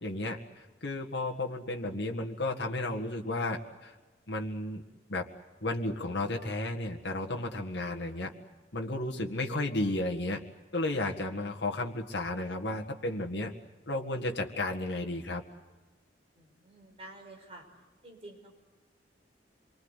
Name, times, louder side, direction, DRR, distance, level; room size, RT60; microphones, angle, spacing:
voice 1, 0.0-3.9 4.3-4.8 5.1-5.3 5.6-8.3 8.7-10.4 10.7-13.5 13.9-15.4, left 2 dB, 80° left, 0 dB, 1.9 m, -33 dB
voice 2, 16.4-17.6 18.0-18.5, right 2 dB, 35° right, 2 dB, 5.7 m, -49 dB
27.0 x 24.0 x 8.3 m, 1.2 s
head